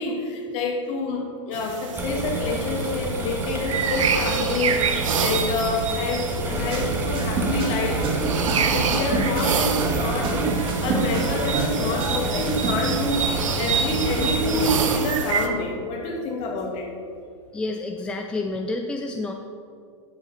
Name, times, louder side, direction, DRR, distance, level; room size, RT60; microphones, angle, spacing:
voice 1, 0.0-8.1 8.7-16.9, left 2 dB, 40° left, 1 dB, 2.2 m, -27 dB
sound 1, 1.5-15.5, right 6 dB, 85° right, 1.0 m, -28 dB
sound 2, 2.0-15.0, right 2 dB, 15° right, 1.4 m, -29 dB
sound 3, 6.5-13.3, right 3 dB, 30° right, 1.9 m, -29 dB
voice 2, 17.5-19.3, left 2 dB, 5° left, 3 dB, 0.5 m, -29 dB
9.5 x 7.6 x 5.7 m, 2.3 s
hypercardioid pair, 135°, 16 cm